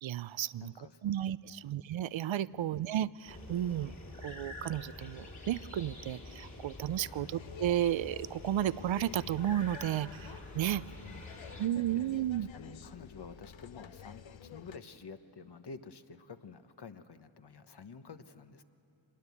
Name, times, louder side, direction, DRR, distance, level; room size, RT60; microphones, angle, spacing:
voice 1, 0.0-0.7 1.0-3.9 4.2-10.8 11.6-12.5, right 11 dB, 70° right, 19 dB, 0.5 m, -33 dB
voice 2, 0.6-1.7 2.5-2.9 7.1-7.4 11.0-12.2 12.5-18.6, left 5 dB, 55° left, 9 dB, 1.1 m, -50 dB
sound 1, 3.3-11.7, left 2 dB, 35° left, 2.7 m, -47 dB
sound 2, 7.4-14.8, left 9 dB, 70° left, 0.7 m, -50 dB
25.5 x 20.5 x 8.3 m, 2.7 s
cardioid pair, 55°, 48 cm